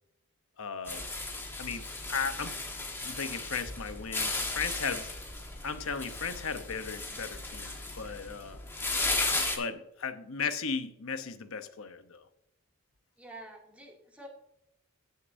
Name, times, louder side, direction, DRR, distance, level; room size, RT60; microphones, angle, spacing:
voice 1, 0.6-1.0 1.6-2.6 3.0-5.0 5.6-8.6 9.6-12.2, left 5 dB, 70° left, 9 dB, 0.9 m, -36 dB
sound 1, 0.8-9.6, left 2 dB, 10° left, 1.4 m, -35 dB
voice 2, 7.6-8.2 13.2-14.3, right 1 dB, 5° right, -2 dB, 2.5 m, -50 dB
16.0 x 6.6 x 2.7 m, 0.80 s
head